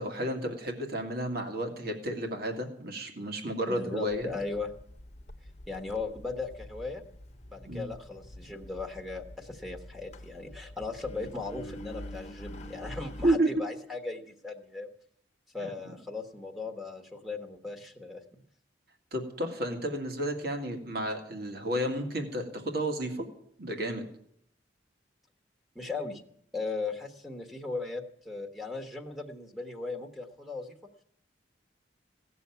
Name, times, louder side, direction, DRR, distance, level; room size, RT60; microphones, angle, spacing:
voice 1, 0.0-4.3 7.7-7.8 13.2-13.5 15.6-15.7 19.1-23.2 23.6-24.0, right 1 dB, 60° right, 4 dB, 2.1 m, -31 dB
voice 2, 3.6-4.7 5.7-7.0 7.5-14.9 15.5-18.2 25.7-26.2 26.5-30.8, left 3 dB, ahead, 3 dB, 1.2 m, -37 dB
Engine, 4.1-13.4, left 1 dB, 40° left, 1.1 m, -46 dB
17.0 x 7.0 x 9.3 m, 0.70 s
head